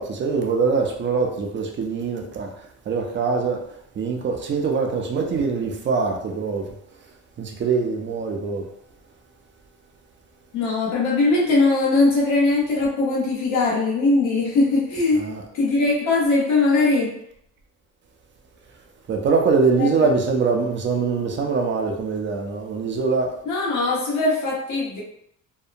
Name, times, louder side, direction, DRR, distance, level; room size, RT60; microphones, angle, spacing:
voice 1, 0.0-2.5 2.9-3.6 4.0-6.7 7.4-8.7 15.1-15.4 19.1-23.4, right 4 dB, 40° right, 0.4 m, -23 dB
voice 2, 10.5-15.2 15.5-17.1 19.8-19.9 23.5-25.0, left 3 dB, 70° left, 1.0 m, -20 dB
2.8 x 2.1 x 2.4 m
cardioid pair, 160°, 31 cm